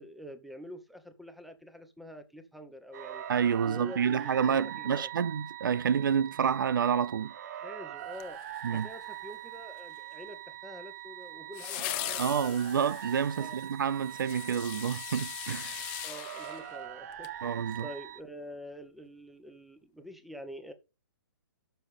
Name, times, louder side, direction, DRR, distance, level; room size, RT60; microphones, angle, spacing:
voice 1, 0.0-3.2 3.6-5.1 7.6-8.4 8.7-12.6 13.4-13.6 16.0-17.3 17.8-20.7, equal, ahead, 1.1 m, -46 dB
sound 1, 2.9-18.2, right 11 dB, 50° right, 1.1 m, -43 dB
voice 2, 3.3-7.3 8.6-8.9 12.2-15.8 17.4-17.9, right 7 dB, 70° right, 0.5 m, -29 dB
sound 2, 8.1-9.0 11.5-17.4 17.7-17.8, left 19 dB, 30° left, 0.7 m, -40 dB
10.5 x 6.7 x 5.2 m
hypercardioid pair, 145°, 12 cm